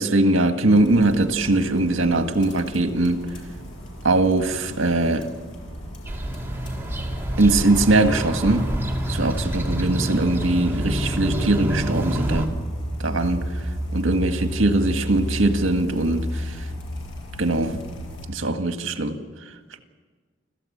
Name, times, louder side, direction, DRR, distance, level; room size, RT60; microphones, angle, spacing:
voice 1, 0.0-3.3 4.0-5.3 7.4-8.8 9.1-12.5 13.0-13.4 13.9-16.7 17.4-17.8 18.3-19.2, right 2 dB, 80° right, 1.7 m, -21 dB
sound 1, 0.7-18.3, equal, 75° left, 5.7 m, -33 dB
sound 2, 6.1-12.5, equal, 10° right, 2.3 m, -27 dB
29.5 x 13.5 x 8.6 m
head